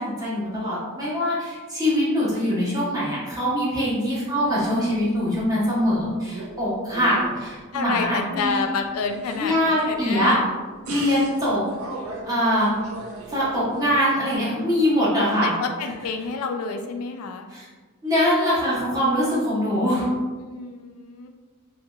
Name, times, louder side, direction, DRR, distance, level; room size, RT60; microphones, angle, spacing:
voice 1, 0.0-8.6 9.3-10.3 10.9-11.6 12.2-12.7 13.3-15.5 17.5-17.6 18.0-20.1, equal, 20° right, -8 dB, 1.0 m, -23 dB
sound 1, 4.4-5.5 5.8-6.6 6.9-8.5 8.9-10.5 10.8-14.0, right 2 dB, 75° right, 0.5 m, -38 dB
voice 2, 7.7-10.4 12.1-12.2 15.4-17.5 20.4-21.3, left 5 dB, 85° left, 5 dB, 0.3 m, -29 dB
2.8 x 2.8 x 2.3 m, 1.4 s
head